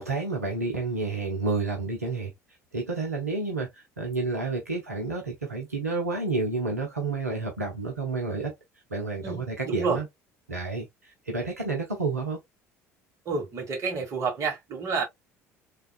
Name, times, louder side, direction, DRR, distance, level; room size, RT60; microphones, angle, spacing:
voice 1, 0.0-2.3 2.7-8.5 8.9-10.1 10.5-12.4, right 3 dB, 85° right, 0.6 m, -30 dB
voice 2, 9.2-10.0 13.2-15.0, right 4 dB, 40° right, 1.3 m, -29 dB
3.4 x 2.3 x 2.3 m
figure-of-eight pair, 60°, 8 cm